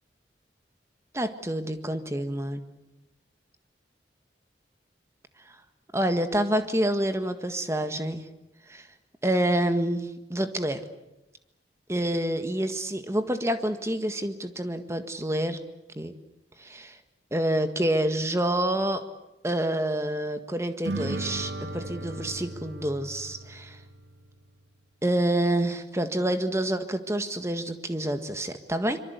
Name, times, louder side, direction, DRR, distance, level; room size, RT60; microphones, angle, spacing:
voice 1, 1.1-2.6 5.9-8.2 8.7-8.9 9.2-10.8 11.9-15.6 15.9-16.1 16.6-17.0 17.3-19.0 19.4-23.8 25.0-29.0, right 1 dB, 15° right, 8 dB, 1.7 m, -27 dB
sound 1, 20.8-24.5, right 2 dB, 75° right, 1.4 m, -36 dB
25.5 x 23.5 x 8.3 m, 0.95 s
head